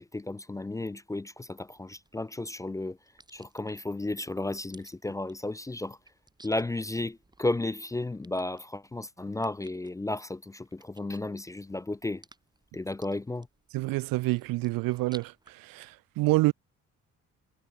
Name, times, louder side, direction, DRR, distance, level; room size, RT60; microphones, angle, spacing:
voice 1, 0.0-3.0 3.3-6.0 6.4-12.2 12.7-13.5, left 2 dB, 10° left, 0.3 m, -33 dB
sound 1, 1.6-15.5, right 2 dB, 10° right, 5.5 m, -59 dB
voice 2, 13.7-16.5, right 20 dB, 90° right, 0.5 m, -27 dB
cardioid pair, 130°, 33 cm